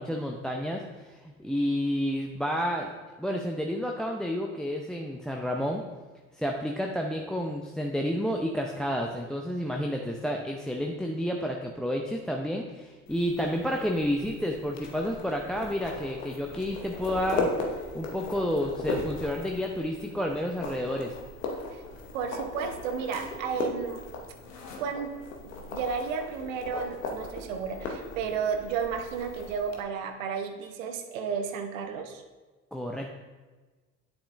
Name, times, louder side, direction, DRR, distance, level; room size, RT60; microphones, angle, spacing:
voice 1, 0.0-2.9 3.2-5.8 6.4-17.5 17.9-21.2 32.7-33.1, equal, ahead, 1 dB, 0.5 m, -30 dB
sound 1, 13.1-29.8, left 3 dB, 85° left, 1.0 m, -37 dB
voice 2, 22.1-24.0 24.8-25.1 25.4-32.2, right 6 dB, 80° right, 5 dB, 0.8 m, -33 dB
8.8 x 7.1 x 2.5 m, 1.3 s
hypercardioid pair, 55°, 39 cm